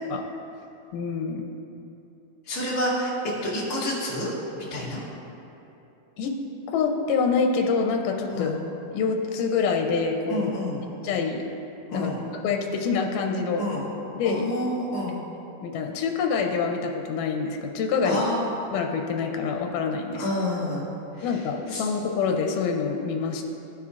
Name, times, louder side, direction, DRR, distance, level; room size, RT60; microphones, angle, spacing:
voice 1, 0.9-1.4 6.2-6.3 6.7-8.6 8.9-10.5 11.0-11.4 11.9-12.1 12.4-13.6 14.1-14.4 15.6-18.2 18.7-20.2 21.2-23.4, left 5 dB, 85° left, 3 dB, 2.2 m, -26 dB
voice 2, 2.5-3.1 3.4-4.3 4.7-5.0 8.3-8.5 10.3-10.8 11.9-12.2 13.5-13.8 14.2-15.2 18.0-18.5 20.2-20.9 21.2-21.3 21.7-21.9, left 1 dB, 10° left, -9 dB, 0.9 m, -28 dB
14.5 x 5.8 x 2.5 m, 2.9 s
omnidirectional pair, 3.6 m